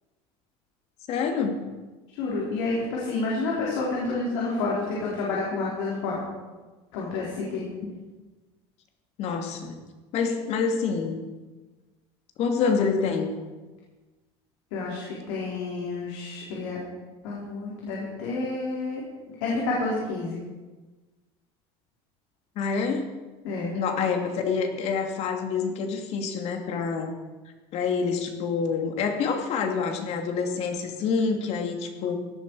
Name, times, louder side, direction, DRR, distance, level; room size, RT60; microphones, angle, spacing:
voice 1, 1.1-1.7 7.8-7.9 9.2-9.8 10.1-11.2 12.4-13.3 22.6-23.1 23.7-27.1 27.7-32.2, left 5 dB, 55° left, 4 dB, 2.6 m, -27 dB
voice 2, 2.2-6.2 6.9-7.6 14.7-16.8 17.2-19.0 19.4-20.4 23.4-23.7, left 3 dB, 80° left, -5 dB, 4.4 m, -29 dB
17.5 x 12.0 x 4.9 m, 1.3 s
supercardioid pair, 120°, 13 cm